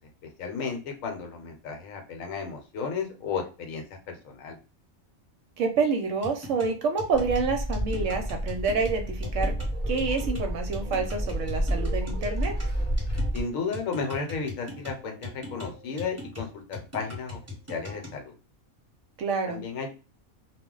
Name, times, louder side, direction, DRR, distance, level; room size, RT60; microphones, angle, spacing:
voice 1, 0.4-4.6 13.3-17.4 17.7-18.3 19.4-19.9, left 5 dB, 75° left, 4 dB, 1.0 m, -33 dB
voice 2, 5.6-9.5 9.9-12.5 19.2-19.6, right 4 dB, 70° right, 5 dB, 0.8 m, -28 dB
sound 1, 6.2-18.2, left 2 dB, 15° right, 0.9 m, -41 dB
sound 2, 7.1-13.4, equal, 15° left, 0.8 m, -30 dB
sound 3, 9.2-13.7, right 2 dB, 40° right, 0.9 m, -45 dB
2.3 x 2.0 x 3.7 m, 0.34 s
omnidirectional pair, 1.5 m